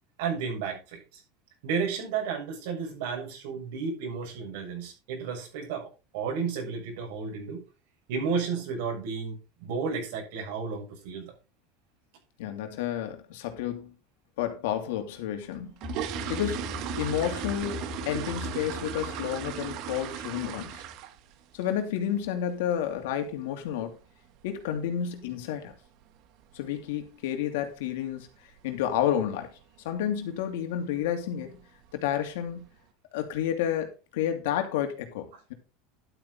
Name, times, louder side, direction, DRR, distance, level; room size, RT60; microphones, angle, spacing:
voice 1, 0.2-1.2 1.6-7.6 8.1-11.3, right 5 dB, 80° right, 6.8 m, -32 dB
voice 2, 12.4-13.9 14.4-15.7 16.3-20.8 21.5-23.9 24.4-25.7 26.5-28.3 28.6-29.5 29.8-31.6 31.9-32.6 33.1-35.5, left 10 dB, 85° left, 2.7 m, -30 dB
sound 1, 15.4-21.3 21.6-21.9 22.3-22.4 22.7-22.9 23.2-23.5 23.7-23.8 24.4-24.5 24.8-24.9 25.4-25.7 26.0-26.1 26.5-26.7 27.0-27.1 27.6-27.7 28.3-28.6 28.9-29.2 29.6-29.7 30.1-30.2 31.0-31.1 31.5-32.0 32.5-32.6, right 11 dB, 50° right, 1.2 m, -37 dB
sound 2, 15.8-21.0, left 6 dB, 15° left, 2.5 m, -41 dB
12.0 x 8.7 x 3.9 m
supercardioid pair, 150°, 0 cm